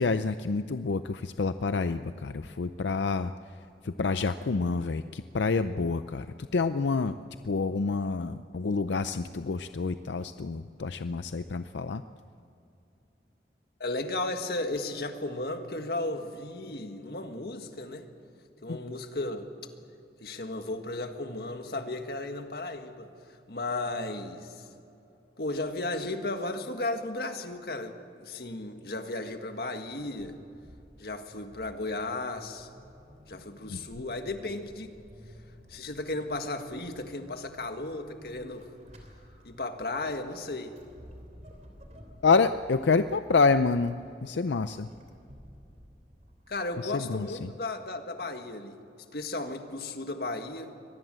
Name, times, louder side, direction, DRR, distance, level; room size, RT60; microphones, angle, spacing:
voice 1, 0.0-7.2 7.4-12.0 18.7-18.8 33.7-33.8 42.2-44.9 46.8-47.5, left 4 dB, 90° left, 11 dB, 0.5 m, -28 dB
voice 2, 13.8-18.1 18.6-19.5 20.2-24.7 25.4-30.4 31.0-32.7 33.3-34.9 35.7-38.7 39.4-40.8 46.5-48.8 49.1-50.7, left 2 dB, 60° left, 6 dB, 1.7 m, -35 dB
Vehicle / Accelerating revving vroom / Squeak, 29.9-46.9, equal, 40° right, 3.2 m, -53 dB
24.0 x 19.0 x 7.7 m, 2.7 s
head